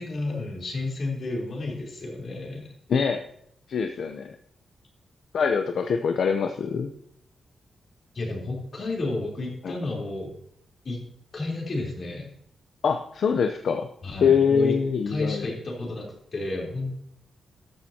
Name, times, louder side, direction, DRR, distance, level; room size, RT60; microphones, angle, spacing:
voice 1, 0.0-2.7 8.1-10.3 10.8-11.0 11.3-12.3 14.0-14.7 15.1-16.1 16.3-16.9, left 2 dB, 45° left, -2 dB, 3.7 m, -31 dB
voice 2, 2.9-3.2 3.7-4.3 5.3-6.9 9.6-9.8 12.8-13.9 14.2-15.5, left 6 dB, 65° left, 6 dB, 0.7 m, -24 dB
13.5 x 12.0 x 2.9 m, 0.70 s
wide cardioid pair, 150°, 0 cm